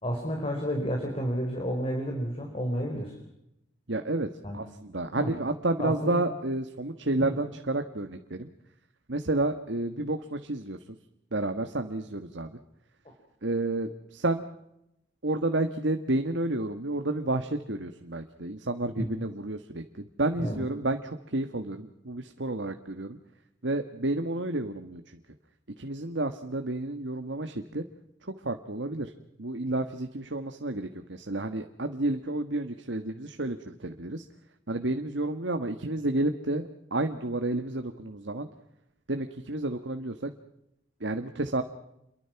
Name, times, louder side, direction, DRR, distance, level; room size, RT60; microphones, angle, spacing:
voice 1, 0.0-3.2 4.4-4.6 5.2-5.3 5.8-6.2 7.2-7.3 19.0-19.2 20.4-20.6, equal, 30° left, 2 dB, 4.4 m, -31 dB
voice 2, 3.9-8.5 9.1-10.8 11.3-12.6 13.4-14.5 15.2-23.2 23.6-25.2 25.8-27.8 28.2-29.1 29.4-34.2 34.7-38.5 39.1-40.3 41.0-41.6, right 2 dB, 70° right, 7 dB, 1.5 m, -30 dB
29.0 x 22.5 x 5.9 m, 0.83 s
head